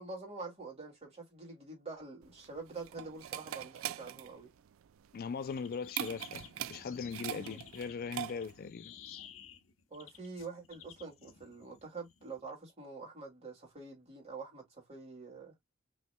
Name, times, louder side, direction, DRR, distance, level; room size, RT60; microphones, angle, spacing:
voice 1, 0.0-4.5 7.3-7.6 9.9-15.5, right 3 dB, 30° right, 2.6 m, -46 dB
sound 1, 2.2-8.7, right 11 dB, 70° right, 0.3 m, -42 dB
voice 2, 5.1-9.2, left 5 dB, 45° left, 0.4 m, -40 dB
sound 2, 5.5-12.4, left 8 dB, 70° left, 0.8 m, -54 dB
5.5 x 3.2 x 2.2 m
head